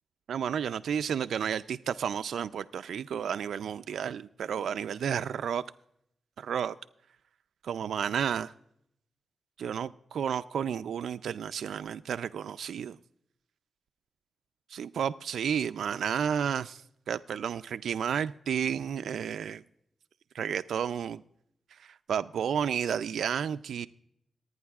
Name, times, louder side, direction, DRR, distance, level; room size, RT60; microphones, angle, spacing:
voice 1, 0.3-5.6 6.4-6.8 7.6-8.5 9.6-13.0 14.7-16.8 17.1-19.6 20.3-21.2 21.8-23.9, right 8 dB, 85° right, 0.3 m, -31 dB
26.0 x 9.4 x 2.3 m
wide cardioid pair, 160°, 0 cm